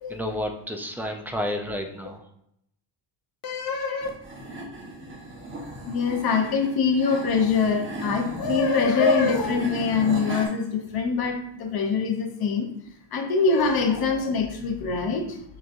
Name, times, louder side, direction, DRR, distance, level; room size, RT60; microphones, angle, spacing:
voice 1, 0.1-2.2, left 1 dB, 5° right, 3 dB, 0.3 m, -30 dB
voice 2, 3.4-4.1 5.9-12.7 13.1-15.4, left 5 dB, 50° left, 4 dB, 0.7 m, -24 dB
sound 1, 4.0-10.5, right 1 dB, 25° right, 1.1 m, -36 dB
6.8 x 3.1 x 2.5 m, 0.76 s
cardioid pair, 135°, 46 cm